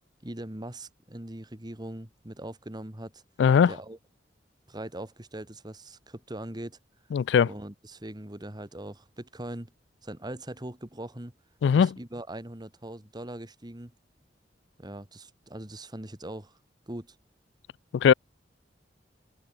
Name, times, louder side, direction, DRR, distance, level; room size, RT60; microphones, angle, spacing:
voice 1, 0.2-3.2 3.7-4.0 4.7-6.8 7.5-9.7 10.0-11.3 11.7-13.9 14.8-16.6 16.9-17.2, right 1 dB, 25° right, 1.9 m, -41 dB
voice 2, 3.4-3.7 7.1-7.5 11.6-11.9 17.9-18.1, left 7 dB, 85° left, 0.3 m, -20 dB
open air
head